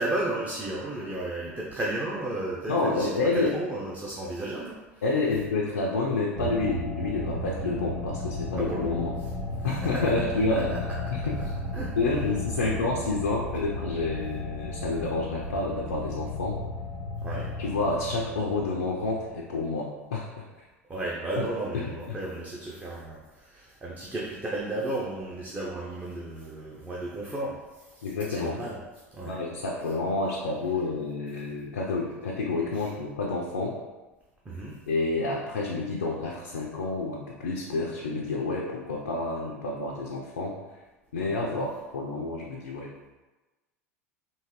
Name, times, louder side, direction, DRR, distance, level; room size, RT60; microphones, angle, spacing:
voice 1, 0.0-4.8 8.6-9.0 9.9-10.0 10.3-10.8 11.7-12.0 12.6-12.7 17.2-17.5 20.9-27.6 27.9-28.0 28.3-28.8 29.1-29.4 32.8-32.9 34.4-34.7, right 2 dB, 15° right, -4 dB, 0.6 m, -33 dB
voice 2, 2.7-3.6 4.2-4.3 5.0-9.1 9.6-10.7 11.1-11.5 12.0-16.6 17.6-20.5 21.4-21.5 21.7-22.2 28.0-28.6 29.3-33.8 34.9-40.6 41.1-42.9, left 3 dB, 75° left, -2 dB, 0.5 m, -29 dB
sound 1, 6.3-19.7, left 2 dB, 75° right, 0.9 m, -34 dB
3.7 x 2.7 x 3.0 m, 1.2 s
figure-of-eight pair, 80°, 8 cm